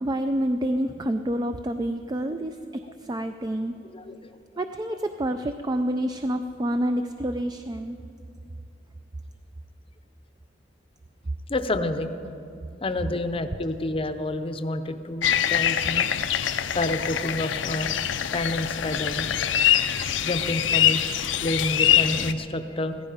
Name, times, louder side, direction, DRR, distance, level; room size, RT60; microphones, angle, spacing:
voice 1, 0.0-3.8 4.6-8.0, right 1 dB, 20° right, 8 dB, 0.4 m, -28 dB
voice 2, 3.9-4.4 11.5-12.1 12.8-16.1 16.7-18.0 18.3-19.3 20.2-21.0 21.4-23.0, left 1 dB, 30° left, 9 dB, 0.7 m, -29 dB
sound 1, 15.2-22.3, left 10 dB, 85° left, 0.6 m, -24 dB
15.5 x 14.5 x 5.0 m, 2.7 s
head